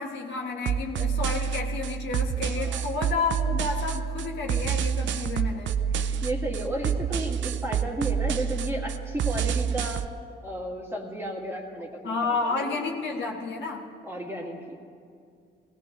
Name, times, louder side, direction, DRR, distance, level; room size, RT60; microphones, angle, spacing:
voice 1, 0.0-5.7 12.0-13.9, left 4 dB, 65° left, -3 dB, 1.5 m, -31 dB
sound 1, 0.7-10.1, right 7 dB, 70° right, 0.6 m, -28 dB
voice 2, 2.3-2.8 6.1-10.0 10.4-12.8 14.0-14.8, right 1 dB, 10° right, -2 dB, 2.3 m, -33 dB
19.5 x 17.5 x 3.2 m, 2.3 s
cardioid pair, 90°, 20 cm